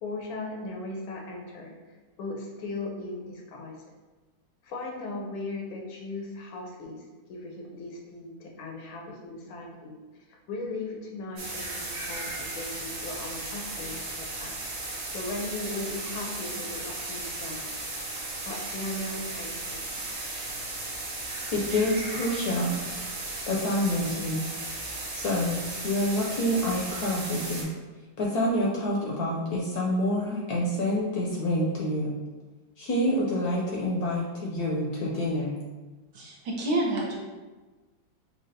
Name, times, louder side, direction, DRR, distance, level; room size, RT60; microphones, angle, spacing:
voice 1, 0.0-1.7 2.2-3.8 4.6-7.0 7.3-10.0 10.3-17.7 18.4-20.0, left 2 dB, 90° left, -1 dB, 1.6 m, -38 dB
sound 1, 11.4-27.6, right 2 dB, 85° right, 1.9 m, -36 dB
voice 2, 21.5-22.8 23.5-24.4 25.1-27.7 28.2-32.1 32.8-35.6, left 1 dB, 70° left, -3 dB, 1.0 m, -27 dB
voice 3, 36.1-37.2, right 2 dB, 65° right, -2 dB, 1.3 m, -28 dB
6.3 x 2.3 x 2.7 m, 1.2 s
omnidirectional pair, 2.1 m